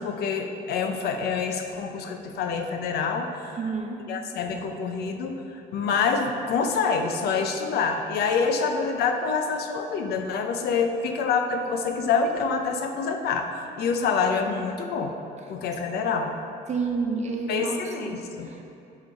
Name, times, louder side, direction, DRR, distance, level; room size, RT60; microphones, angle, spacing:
voice 1, 0.0-3.6 4.1-13.5 13.8-15.1 15.5-16.3 17.5-18.5, left 5 dB, 70° left, 5 dB, 0.7 m, -26 dB
voice 2, 3.5-4.0 16.7-18.1 18.4-18.6, right 4 dB, 40° right, 2 dB, 0.9 m, -29 dB
6.5 x 5.0 x 4.7 m, 2.7 s
cardioid pair, 110°, 17 cm